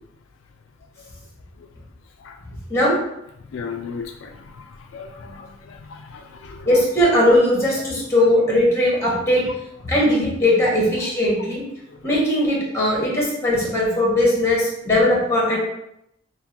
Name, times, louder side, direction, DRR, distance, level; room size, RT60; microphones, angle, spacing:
voice 1, 3.5-4.6 4.9-6.7, left 5 dB, 70° left, 4 dB, 0.3 m, -36 dB
voice 2, 6.6-9.5 9.8-11.6 12.0-15.6, left 1 dB, 15° left, -4 dB, 1.3 m, -19 dB
5.7 x 2.2 x 2.9 m, 0.80 s
head